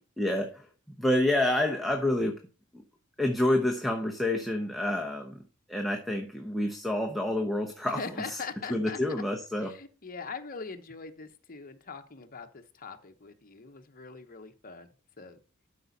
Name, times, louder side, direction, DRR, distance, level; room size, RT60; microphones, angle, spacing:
voice 1, 0.2-0.6 1.0-2.4 3.2-5.4 5.7-8.0 8.3-8.4 8.7-9.8, left 1 dB, ahead, 1 dB, 0.9 m, -28 dB
voice 2, 7.8-9.2 9.6-14.9 15.2-15.4, left 5 dB, 45° left, 6 dB, 1.1 m, -42 dB
12.5 x 5.1 x 4.1 m, 0.34 s
head